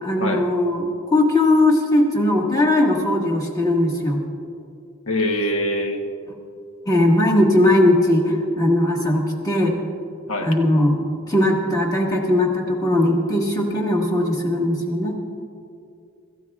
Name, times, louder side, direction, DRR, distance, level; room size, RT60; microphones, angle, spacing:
voice 1, 0.0-4.2 6.8-9.7 10.4-11.0 11.3-15.2, left 1 dB, 20° left, -2 dB, 1.7 m, -19 dB
voice 2, 5.1-6.0 10.3-10.5, left 1 dB, 90° left, 3 dB, 1.1 m, -23 dB
26.0 x 14.0 x 2.4 m, 2.5 s
head